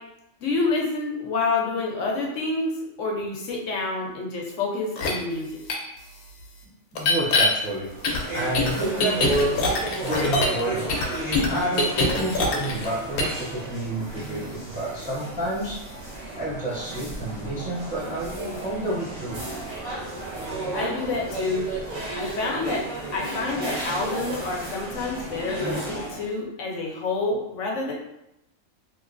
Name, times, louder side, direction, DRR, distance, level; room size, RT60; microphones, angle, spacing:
voice 1, 0.4-5.6 20.7-21.7 22.1-22.8 23.1-27.9, left 3 dB, 65° left, -1 dB, 0.9 m, -28 dB
sound 1, 5.0-5.1 5.7-5.8 7.0-7.5 8.0-10.6 10.9-12.9 13.2-13.4, left 3 dB, 90° left, 1.1 m, -23 dB
voice 2, 6.9-7.9 8.3-9.6 10.0-11.0 11.5-15.8 16.4-19.4, right 1 dB, 10° right, -7 dB, 0.4 m, -29 dB
sound 2, 7.9-26.3, right 2 dB, 35° right, 0.9 m, -33 dB
2.9 x 2.8 x 2.5 m, 0.86 s
omnidirectional pair, 1.5 m